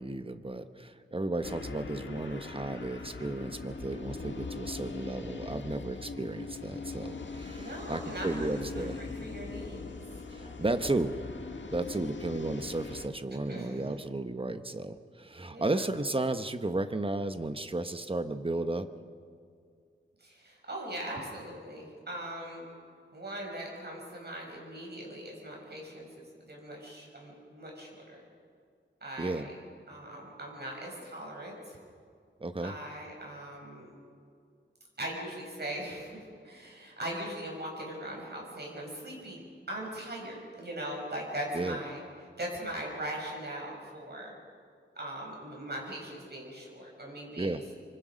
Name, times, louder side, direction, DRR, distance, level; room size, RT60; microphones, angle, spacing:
voice 1, 0.0-9.0 10.3-11.2 11.7-18.9 29.2-29.5 32.4-32.7 41.5-41.8 47.4-47.6, right 2 dB, 30° right, 9 dB, 1.2 m, -34 dB
sound 1, 1.4-13.1, left 4 dB, 70° left, 1.6 m, -41 dB
voice 2, 7.6-10.0 13.5-13.9 15.5-15.9 20.2-22.7 23.1-28.2 29.0-29.5 29.9-31.8 32.6-34.0 35.0-39.4 39.7-42.0 42.4-44.3 45.0-47.7, right 1 dB, 55° right, -1 dB, 7.3 m, -40 dB
25.5 x 24.5 x 5.3 m, 2.3 s
wide cardioid pair, 85°, 20 cm